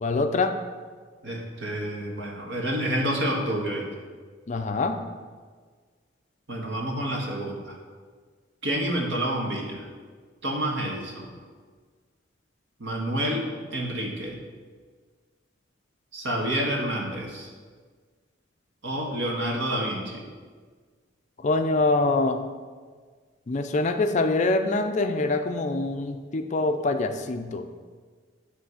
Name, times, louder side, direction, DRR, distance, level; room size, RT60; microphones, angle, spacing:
voice 1, 0.0-0.6 4.5-5.0 21.4-22.4 23.5-27.6, left 2 dB, 40° left, 7 dB, 0.4 m, -25 dB
voice 2, 1.2-3.9 6.5-7.8 8.6-9.9 10.4-11.3 12.8-13.5 13.7-14.4 16.1-17.5 18.8-20.2, right 1 dB, 65° right, -1 dB, 1.5 m, -28 dB
9.7 x 3.3 x 6.3 m, 1.5 s
head